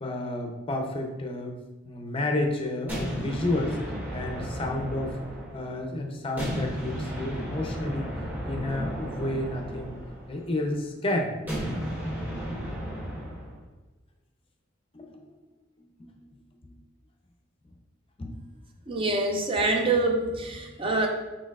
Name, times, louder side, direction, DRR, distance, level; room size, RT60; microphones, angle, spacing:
voice 1, 0.0-1.6 1.8-5.2 5.5-8.1 8.4-10.0 10.3-11.3 14.9-15.3 16.0-16.1 16.6-16.8 18.2-18.4 19.1-19.2 19.6-19.7 20.2-20.7, left 1 dB, 30° left, 2 dB, 0.5 m, -31 dB
sound 1, 2.9-5.9 6.4-10.6 11.5-13.6, equal, 10° right, 1.2 m, -34 dB
voice 2, 18.9-21.1, right 2 dB, 25° right, 1 dB, 0.5 m, -25 dB
4.5 x 4.2 x 2.4 m, 1.1 s
head